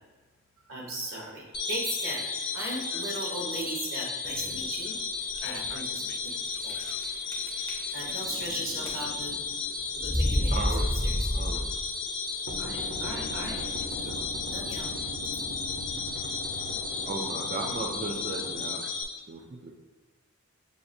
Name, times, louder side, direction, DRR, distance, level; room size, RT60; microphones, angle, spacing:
voice 1, 0.7-2.2 2.5-6.0 6.6-6.7 7.9-9.4 9.9-10.6 10.9-11.3 12.6-13.6 13.9-14.2 14.5-14.9, right 1 dB, 80° right, -3 dB, 1.2 m, -37 dB
sound 1, 1.5-19.0, left 4 dB, 50° left, 0.8 m, -34 dB
sound 2, 4.2-4.7 5.3-5.4 5.6-5.7 6.6-7.0 7.3-8.5 8.8-9.3 10.0-11.9, equal, 15° left, 0.6 m, -29 dB
voice 2, 5.3-7.0 18.3-18.4 18.8-18.9, left 7 dB, 75° left, 9 dB, 0.3 m, -48 dB
sound 3, 8.2-10.5 10.8-10.9 12.5-18.7, right 1 dB, 60° right, 0.8 m, -41 dB
voice 3, 10.5-11.8 14.0-14.2 17.1-18.9 19.3-19.8, right 3 dB, 40° right, 1 dB, 0.3 m, -36 dB
6.8 x 2.5 x 2.6 m, 1.3 s
head